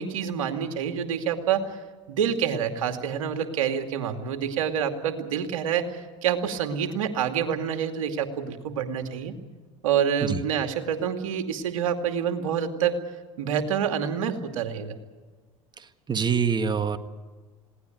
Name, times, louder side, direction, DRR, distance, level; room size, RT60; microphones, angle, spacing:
voice 1, 0.0-1.7 2.1-9.3 9.8-13.0 13.4-15.0, right 8 dB, 75° right, 6 dB, 2.5 m, -27 dB
voice 2, 16.1-17.0, right 6 dB, 25° right, 10 dB, 1.8 m, -24 dB
21.0 x 18.0 x 9.3 m, 1.4 s
hypercardioid pair, 85°, 17 cm